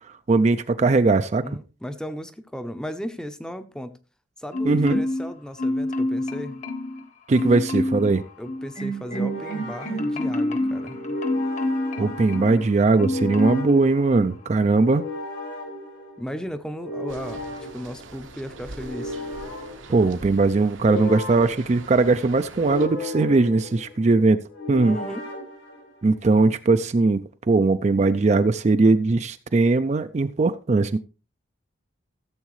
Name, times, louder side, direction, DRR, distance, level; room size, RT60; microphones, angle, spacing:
voice 1, 0.3-1.4 4.6-5.0 7.3-8.2 12.0-15.0 19.9-24.4 24.7-25.0 26.0-31.0, right 3 dB, 35° right, 0.4 m, -20 dB
voice 2, 1.4-3.9 4.4-6.6 7.4-7.5 8.4-11.2 16.2-17.4 17.7-19.2 24.7-25.2, equal, 5° left, 0.6 m, -35 dB
Marimba xylophone, 4.5-5.3 5.6-7.0 7.4-8.1 8.5-12.6 13.0-13.7 14.1-14.3, left 1 dB, 35° left, 1.0 m, -27 dB
sound 1, 7.9-26.3, left 2 dB, 80° left, 3.9 m, -36 dB
sound 2, 17.1-22.9, right 2 dB, 85° right, 1.2 m, -43 dB
15.5 x 7.3 x 3.1 m
head